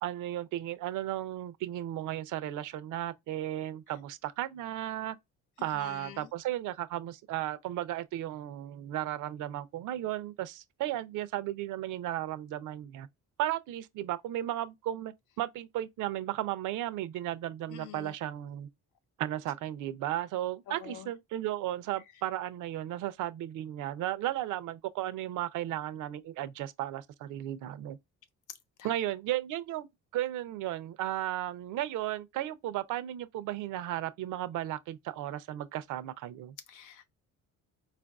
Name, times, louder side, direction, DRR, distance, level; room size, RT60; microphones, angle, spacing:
voice 1, 0.0-5.2 5.6-13.1 13.4-18.7 19.2-28.0 28.8-36.5, right 13 dB, 80° right, 0.6 m, -35 dB
voice 2, 5.6-6.3 17.7-18.1 20.7-21.1 28.8-28.9 36.7-37.1, left 10 dB, 85° left, 0.8 m, -47 dB
4.4 x 2.5 x 2.3 m
cardioid pair, 125°, 30 cm